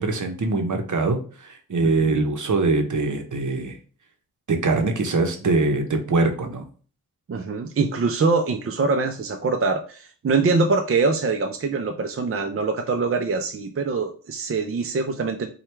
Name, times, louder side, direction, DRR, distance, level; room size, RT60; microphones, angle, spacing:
voice 1, 0.0-3.8 4.5-6.6, right 3 dB, 60° right, 5 dB, 0.8 m, -23 dB
voice 2, 1.8-2.1 7.3-15.5, right 4 dB, 40° right, 4 dB, 0.5 m, -24 dB
4.5 x 2.3 x 3.3 m, 0.40 s
wide cardioid pair, 75°, 35 cm